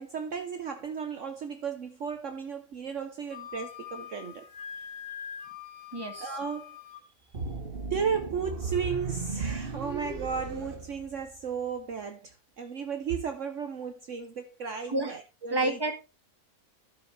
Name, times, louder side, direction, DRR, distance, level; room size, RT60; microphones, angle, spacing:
voice 1, 0.0-4.5 6.2-6.8 7.9-15.8, right 6 dB, 55° right, 1.3 m, -34 dB
Wind instrument woodwind instrument, 3.3-7.0, left 8 dB, 85° left, 2.3 m, -43 dB
voice 2, 5.9-6.3 14.9-15.2 15.5-15.9, right 2 dB, 15° right, 1.8 m, -29 dB
sound 1, 7.3-11.6, right 4 dB, 40° right, 1.4 m, -37 dB
12.0 x 7.4 x 3.4 m
omnidirectional pair, 1.6 m